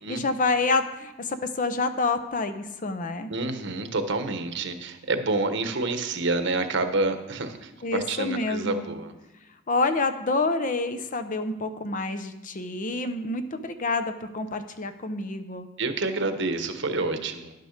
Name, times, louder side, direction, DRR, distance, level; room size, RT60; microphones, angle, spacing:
voice 1, 0.1-3.3 7.8-8.9 9.7-15.7, left 3 dB, 40° left, 9 dB, 0.7 m, -28 dB
voice 2, 3.3-9.1 15.8-17.5, right 3 dB, 60° right, 7 dB, 1.1 m, -28 dB
11.0 x 6.7 x 6.5 m, 1.0 s
head